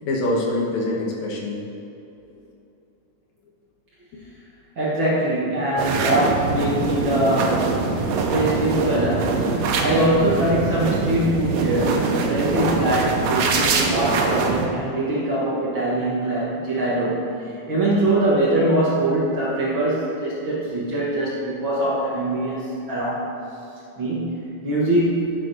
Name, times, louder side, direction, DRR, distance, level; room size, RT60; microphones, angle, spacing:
voice 1, 0.0-1.6 8.5-9.5 10.2-10.7, left 1 dB, 70° left, -2 dB, 2.5 m, -27 dB
voice 2, 4.8-7.7 8.3-9.5 9.8-17.3 17.7-23.3 24.0-25.3, right 1 dB, 55° right, -7 dB, 1.4 m, -23 dB
sound 1, 5.8-14.7, right 4 dB, 85° right, 2.3 m, -23 dB
11.5 x 7.9 x 2.7 m, 2.8 s
omnidirectional pair, 3.6 m